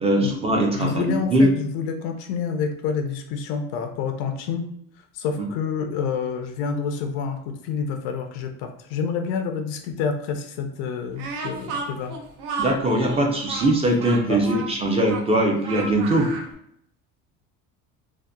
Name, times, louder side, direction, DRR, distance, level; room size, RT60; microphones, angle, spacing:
voice 1, 0.0-1.5 12.6-16.3, right 1 dB, 20° right, 1 dB, 0.4 m, -21 dB
voice 2, 0.7-4.7 5.1-12.2 14.3-14.6, left 6 dB, 90° left, 5 dB, 0.5 m, -28 dB
Speech, 11.2-16.5, right 4 dB, 80° right, 0.6 m, -33 dB
2.7 x 2.1 x 2.2 m, 0.70 s
cardioid pair, 135°, 33 cm